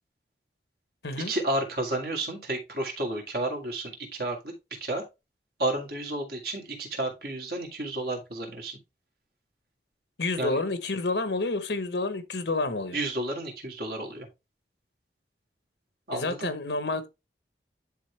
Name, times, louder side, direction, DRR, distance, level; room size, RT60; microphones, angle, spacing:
voice 1, 1.3-4.5 4.8-5.0 5.6-8.8 10.4-10.6 12.9-14.3 16.1-16.5, right 1 dB, 60° right, 2.1 m, -31 dB
voice 2, 10.2-13.0 16.1-17.1, left 3 dB, 80° left, 1.0 m, -29 dB
10.5 x 3.6 x 3.2 m
head